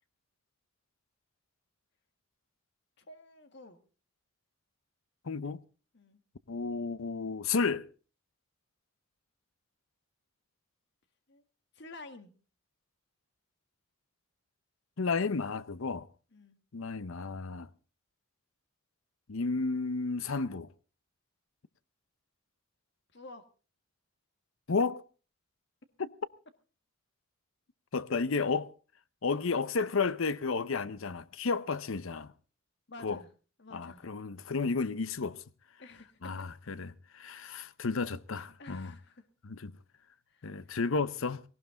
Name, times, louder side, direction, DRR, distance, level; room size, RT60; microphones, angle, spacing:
voice 1, 3.0-3.8 5.9-6.2 11.3-11.4 11.7-12.3 16.3-16.6 23.1-23.4 32.9-33.3 33.6-34.1 35.8-36.2 37.1-37.7 38.6-39.2 40.3-40.7, left 2 dB, 55° left, 1.8 m, -51 dB
voice 2, 5.2-5.6 6.5-7.8 15.0-16.1 16.7-17.7 19.3-20.7 24.7-25.0 26.0-26.1 27.9-28.7 29.2-32.3 33.0-33.3 33.7-35.4 36.2-39.0 39.4-39.7 40.4-41.4, left 4 dB, 70° left, 0.7 m, -32 dB
18.0 x 18.0 x 3.8 m
head